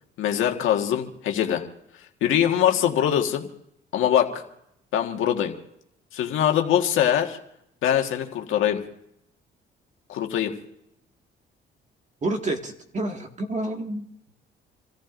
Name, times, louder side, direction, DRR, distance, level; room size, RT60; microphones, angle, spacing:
voice 1, 0.2-1.7 2.2-3.5 3.9-4.4 4.9-5.5 6.1-7.4 7.8-8.8 10.1-10.5, left 10 dB, 85° left, 3 dB, 1.6 m, -23 dB
voice 2, 12.2-14.0, right 2 dB, 35° right, 4 dB, 1.9 m, -29 dB
28.5 x 14.5 x 2.6 m, 0.77 s
cardioid pair, 90°, 20 cm